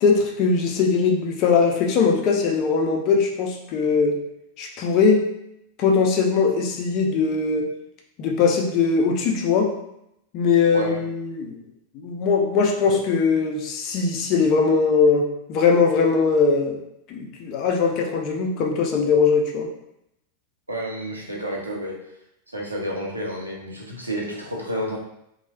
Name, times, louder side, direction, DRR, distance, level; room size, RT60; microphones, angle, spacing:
voice 1, 0.0-4.2 4.6-5.3 5.8-7.7 8.2-9.7 10.3-11.6 12.0-16.8 17.1-19.7, left 5 dB, 40° left, 2 dB, 0.5 m, -20 dB
voice 2, 20.7-21.9 22.5-25.0, right 1 dB, 85° right, -3 dB, 0.7 m, -30 dB
3.0 x 2.2 x 2.8 m, 0.80 s
figure-of-eight pair, 90°, 0 cm